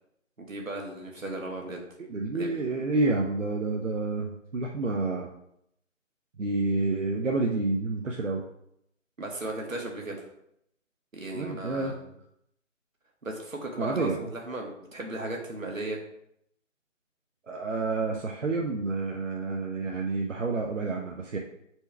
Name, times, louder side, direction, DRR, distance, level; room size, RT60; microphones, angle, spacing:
voice 1, 0.4-1.8 2.3-2.6 9.2-10.2 11.1-11.9 13.2-16.0, right 2 dB, 90° right, 0 dB, 1.7 m, -36 dB
voice 2, 2.1-5.3 6.4-8.4 11.3-11.9 13.8-14.2 17.5-21.4, right 3 dB, 70° right, 0 dB, 0.9 m, -29 dB
6.8 x 4.5 x 3.4 m, 0.75 s
figure-of-eight pair, 150°, 39 cm